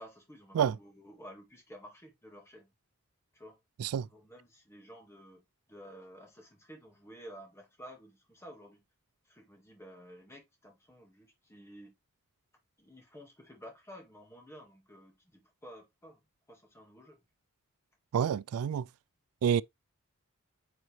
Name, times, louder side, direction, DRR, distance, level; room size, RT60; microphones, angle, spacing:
voice 1, 0.0-2.7 3.3-3.6 4.0-8.8 9.2-11.9 12.8-16.2 16.5-17.2, equal, 10° left, 1.8 m, -52 dB
voice 2, 18.1-18.9 19.4-19.6, right 8 dB, 85° right, 0.3 m, -28 dB
9.0 x 4.0 x 3.2 m
head